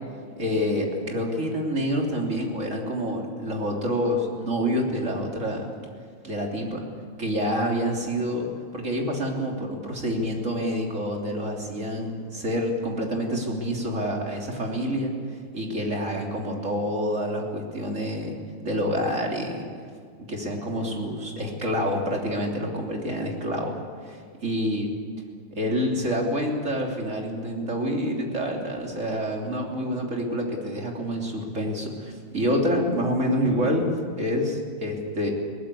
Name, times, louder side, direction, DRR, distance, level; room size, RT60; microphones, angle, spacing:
voice 1, 0.4-5.7 6.2-6.8 7.2-15.1 15.5-18.4 18.6-19.7 20.2-24.9 25.5-33.9 34.2-35.3, equal, 40° right, 0 dB, 3.5 m, -27 dB
21.5 x 18.5 x 8.4 m, 2.1 s
omnidirectional pair, 2.0 m